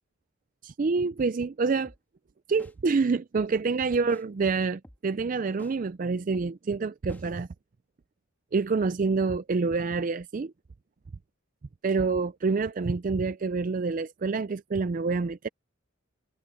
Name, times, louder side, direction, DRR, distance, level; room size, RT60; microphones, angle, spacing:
voice 1, 0.6-1.9 2.5-7.5 8.5-10.5 11.8-15.5, right 4 dB, 40° right, 0.4 m, -27 dB
sound 1, 1.8-2.0 2.6-2.7 3.3-3.5 4.1-4.2 4.8-5.0 5.6-5.7 6.3-6.5 7.1-7.2, equal, 10° left, 2.1 m, -51 dB
head